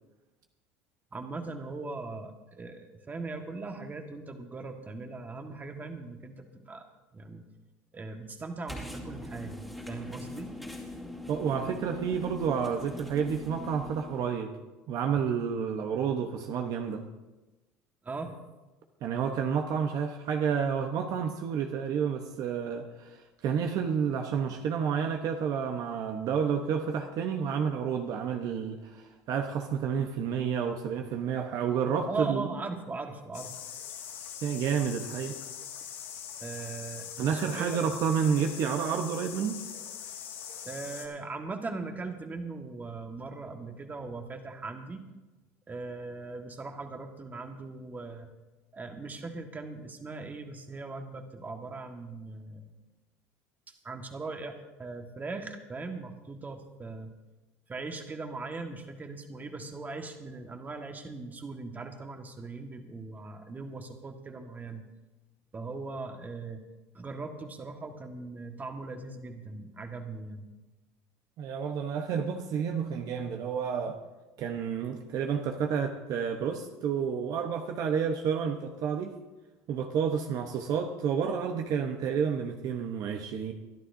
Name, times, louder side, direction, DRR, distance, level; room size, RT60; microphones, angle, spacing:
voice 1, 1.1-6.9 7.1-7.4 7.9-10.5 15.2-15.3 18.0-18.4 32.1-33.5 36.4-37.9 40.6-45.0 45.7-48.3 48.7-52.7 53.8-57.1 57.7-64.8 65.5-66.6 66.9-70.4, right 3 dB, 25° right, 4 dB, 1.6 m, -39 dB
sound 1, 8.7-14.4, left 1 dB, ahead, 2.4 m, -42 dB
voice 2, 11.3-14.5 14.9-17.0 19.0-23.2 23.4-32.5 34.4-35.4 37.2-39.6 71.4-74.0 74.4-79.1 79.7-83.5, right 7 dB, 55° right, 4 dB, 1.0 m, -30 dB
sound 2, 33.3-41.1, left 9 dB, 85° left, 2.1 m, -42 dB
23.0 x 11.5 x 2.7 m, 1.1 s
supercardioid pair, 95°, 7 cm